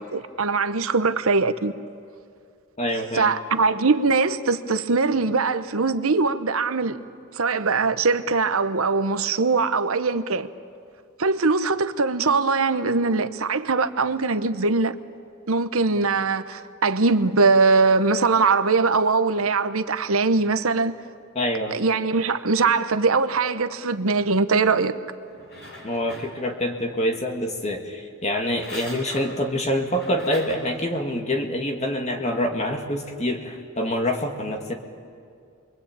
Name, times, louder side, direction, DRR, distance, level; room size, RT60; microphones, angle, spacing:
voice 1, 0.0-1.7 3.1-7.0 7.3-10.5 11.2-14.9 15.5-20.9 21.7-24.9, right 4 dB, 70° right, 0.9 m, -21 dB
voice 2, 2.8-3.3 21.4-21.8 25.8-34.7, left 1 dB, 30° left, 2.2 m, -26 dB
sound 1, 25.3-26.8 28.3-30.8 31.3-31.4, left 1 dB, 50° left, 6.3 m, -41 dB
28.5 x 23.0 x 8.8 m
head